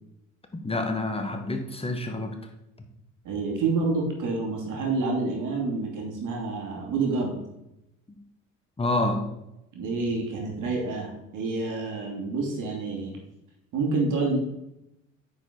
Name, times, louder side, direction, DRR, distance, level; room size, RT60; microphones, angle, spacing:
voice 1, 0.5-2.3 8.8-9.2, left 2 dB, 15° left, 5 dB, 1.4 m, -28 dB
voice 2, 3.2-7.4 9.7-13.2 13.7-14.4, right 3 dB, 50° right, 0 dB, 2.7 m, -28 dB
9.4 x 5.2 x 4.0 m, 0.87 s
figure-of-eight pair, 55°, 40 cm